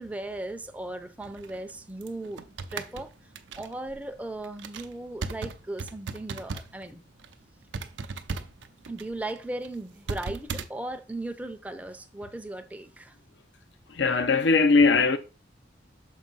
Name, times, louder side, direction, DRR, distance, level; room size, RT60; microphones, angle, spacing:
voice 1, 0.0-2.4 2.7-3.1 3.5-7.0 8.9-13.2, right 2 dB, 10° right, 0.5 m, -37 dB
sound 1, 1.2-6.9 7.1-7.3 7.7-10.7, right 4 dB, 85° right, 0.6 m, -37 dB
voice 2, 13.9-15.2, left 4 dB, 75° left, 0.6 m, -20 dB
6.4 x 2.7 x 5.3 m
head